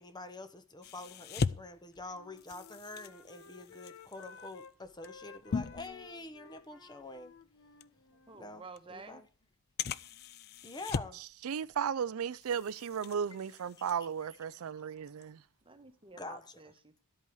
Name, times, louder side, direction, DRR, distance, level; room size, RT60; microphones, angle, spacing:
voice 1, 0.0-7.3 8.4-9.2 10.6-11.2 16.2-16.4, left 2 dB, 20° left, 1.0 m, -46 dB
sound 1, 0.8-6.6 7.0-7.2 7.8-7.9 8.8-8.9 9.8-11.3 11.6-12.1 12.4-14.6 15.0-15.2, left 5 dB, 45° left, 0.4 m, -40 dB
Wind instrument woodwind instrument, 2.0-4.7 5.0-8.6, left 5 dB, 65° left, 1.0 m, -55 dB
voice 2, 8.1-9.2 15.6-17.0, right 4 dB, 25° right, 1.2 m, -51 dB
voice 3, 11.1-15.4, right 7 dB, 70° right, 0.4 m, -35 dB
12.0 x 8.3 x 4.7 m
head